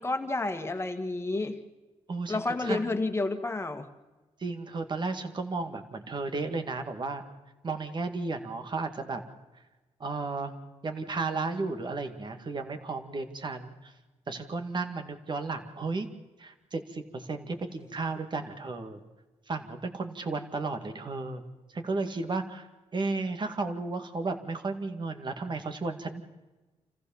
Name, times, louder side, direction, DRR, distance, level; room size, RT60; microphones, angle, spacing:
voice 1, 0.0-1.6 2.3-3.9, left 2 dB, 20° left, 6 dB, 1.9 m, -30 dB
voice 2, 2.1-3.0 4.4-7.2 7.6-9.2 10.0-10.5 10.8-13.9 14.3-16.1 16.4-19.0 19.5-21.4 21.7-22.7 22.9-26.2, right 3 dB, 40° right, 6 dB, 2.1 m, -33 dB
27.0 x 15.0 x 7.2 m, 1.1 s
cardioid pair, 85°, 11 cm